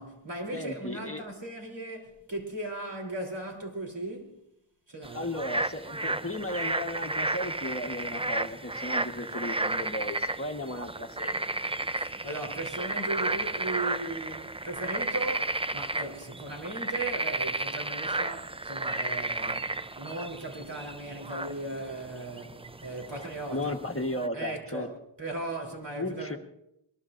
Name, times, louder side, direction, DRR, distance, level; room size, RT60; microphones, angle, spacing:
voice 1, 0.0-4.4 4.9-5.3 11.9-23.8 24.3-26.4, right 2 dB, 65° right, 3.5 m, -37 dB
voice 2, 0.5-1.2 5.1-11.5 23.5-24.9 25.9-26.4, left 1 dB, 30° left, 1.3 m, -35 dB
sound 1, 5.0-24.3, right 2 dB, 15° right, 0.5 m, -33 dB
22.0 x 20.0 x 2.6 m
wide cardioid pair, 45°, 46 cm